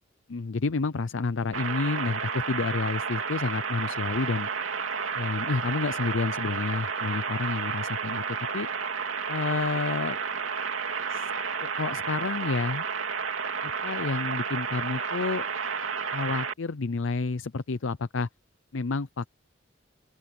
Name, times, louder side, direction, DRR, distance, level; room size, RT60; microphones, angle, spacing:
voice 1, 0.3-4.5 5.2-8.2 8.5-8.7 9.3-10.2 11.1-11.3 11.6-12.9 13.6-15.5 16.1-18.3 18.7-19.3, left 4 dB, 75° left, 0.6 m, -30 dB
sound 1, 1.5-16.5, right 6 dB, 90° right, 2.8 m, -31 dB
open air
head